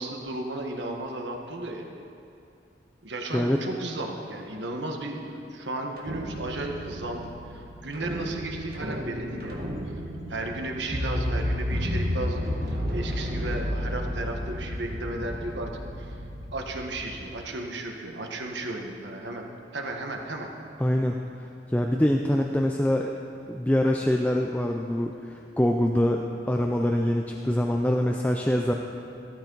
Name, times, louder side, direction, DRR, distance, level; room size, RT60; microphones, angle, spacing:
voice 1, 0.0-1.9 3.0-9.6 9.9-10.0 10.3-15.7 16.0-16.2 16.5-19.4 19.7-20.5, right 2 dB, 85° right, 2 dB, 1.4 m, -34 dB
sound 1, 6.0-17.2, equal, 55° right, 1.8 m, -32 dB
voice 2, 20.8-21.2 21.7-23.1 23.5-28.7, left 1 dB, 10° left, 2 dB, 0.5 m, -24 dB
15.5 x 13.5 x 4.0 m, 2.6 s
head